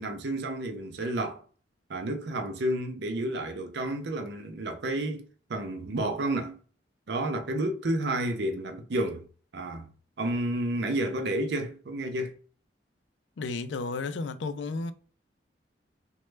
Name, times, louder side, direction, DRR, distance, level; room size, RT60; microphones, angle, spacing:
voice 1, 0.0-1.4 1.9-6.6 7.1-9.2 9.5-9.9 10.2-12.3, right 1 dB, 60° right, 0.5 m, -31 dB
voice 2, 13.4-14.9, left 3 dB, 70° left, 0.4 m, -32 dB
3.1 x 2.2 x 3.2 m
head